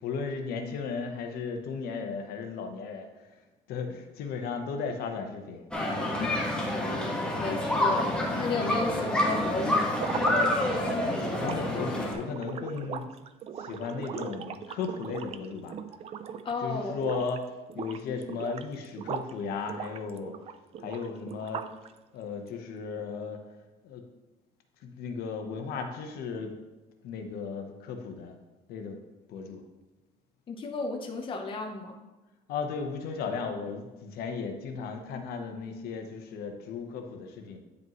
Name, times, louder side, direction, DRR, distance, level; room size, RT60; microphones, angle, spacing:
voice 1, 0.0-3.1 3.7-5.6 6.0-6.1 10.7-13.0 13.6-15.7 16.6-17.4 17.7-20.3 20.8-21.6 22.1-23.4 23.8-24.0 24.8-26.5 27.0-28.3 28.7-29.0 29.3-29.6 32.5-37.6, left 5 dB, 70° left, 5 dB, 1.0 m, -35 dB
sound 1, 5.7-12.1, left 1 dB, 5° left, 1.3 m, -28 dB
voice 2, 7.4-8.1 8.4-10.0 16.4-17.0 30.5-32.0, left 3 dB, 30° left, 3 dB, 0.8 m, -33 dB
sound 2, 9.9-16.6 16.9-17.4 17.7-19.3 19.7-21.9, right 7 dB, 40° right, 0.4 m, -39 dB
9.5 x 5.1 x 3.0 m, 1.1 s
cardioid pair, 135°, 16 cm